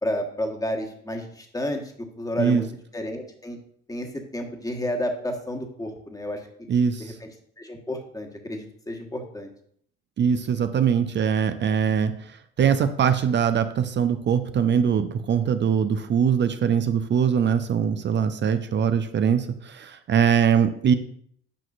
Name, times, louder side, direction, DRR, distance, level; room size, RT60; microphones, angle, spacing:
voice 1, 0.0-1.8 2.2-2.7 2.9-3.6 3.9-6.4 7.0-7.1 7.6-9.5, left 1 dB, 10° left, 3 dB, 1.5 m, -31 dB
voice 2, 6.7-7.2 10.2-20.9, right 7 dB, 35° right, 9 dB, 0.6 m, -22 dB
8.6 x 5.9 x 2.5 m, 0.64 s
hypercardioid pair, 60°, 30 cm